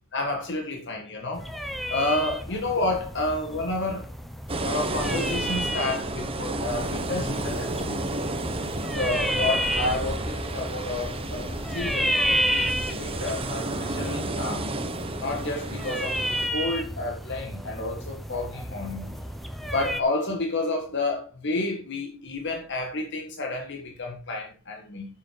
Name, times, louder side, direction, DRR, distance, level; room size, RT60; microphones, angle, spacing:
voice 1, 0.1-1.5 1.9-4.1 4.6-8.4 8.9-14.7 15.2-19.1 19.7-25.1, left 2 dB, 55° left, 1.9 m, -30 dB
sound 1, 1.4-20.0, equal, ahead, 1.0 m, -32 dB
sound 2, 4.5-16.5, right 2 dB, 25° right, 1.2 m, -32 dB
10.0 x 7.8 x 4.7 m
head